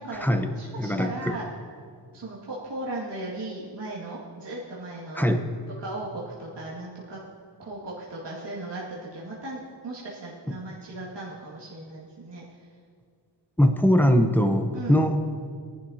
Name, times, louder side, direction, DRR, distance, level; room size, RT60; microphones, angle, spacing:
voice 1, 0.0-1.5 2.1-5.4 5.8-7.2 7.6-12.7 14.7-15.0, right 2 dB, 65° right, -7 dB, 2.3 m, -37 dB
voice 2, 0.8-1.1 5.2-5.5 13.6-15.1, equal, 5° left, 5 dB, 0.9 m, -21 dB
18.5 x 11.5 x 2.9 m, 2.2 s
wide cardioid pair, 80°, 45 cm